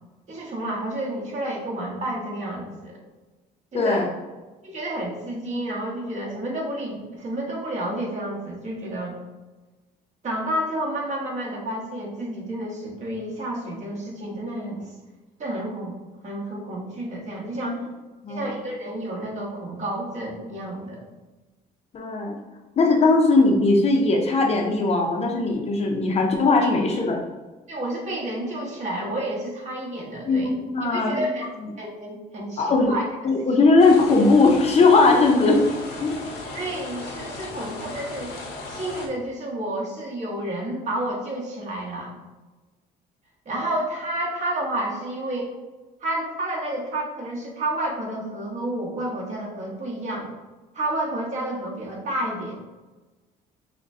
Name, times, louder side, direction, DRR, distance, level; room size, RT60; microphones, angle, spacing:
voice 1, 0.3-3.0 3.7-4.0 4.6-9.2 10.2-14.9 15.4-16.0 16.2-17.8 18.3-21.0 26.6-26.7 27.7-30.5 30.8-31.5 31.8-33.1 36.5-38.4 38.7-42.1 43.4-45.5 46.0-50.3 50.7-52.6, right 1 dB, 45° right, -3 dB, 1.3 m, -30 dB
voice 2, 3.7-4.1 17.6-17.8 18.2-18.5 21.9-22.4 22.8-27.2 30.3-31.3 32.6-32.9 33.2-35.6 36.0-36.2, left 3 dB, 40° left, 1 dB, 0.6 m, -19 dB
sound 1, 33.8-39.1, left 2 dB, 80° left, 0.9 m, -36 dB
6.1 x 2.2 x 2.7 m, 1.2 s
cardioid pair, 110°, 17 cm